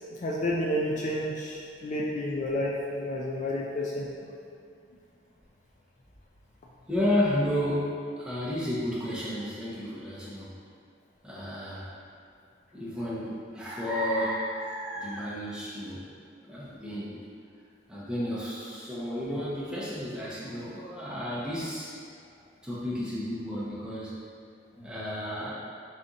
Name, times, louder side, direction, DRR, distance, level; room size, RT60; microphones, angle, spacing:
voice 1, 0.1-4.1, left 1 dB, 45° left, -3 dB, 0.4 m, -30 dB
voice 2, 6.9-10.5 11.2-11.9 12.7-16.0 16.4-17.2 17.9-21.9 22.6-24.2 24.7-25.5, left 1 dB, 5° right, -9 dB, 0.9 m, -32 dB
4.1 x 4.1 x 2.5 m, 2.3 s
head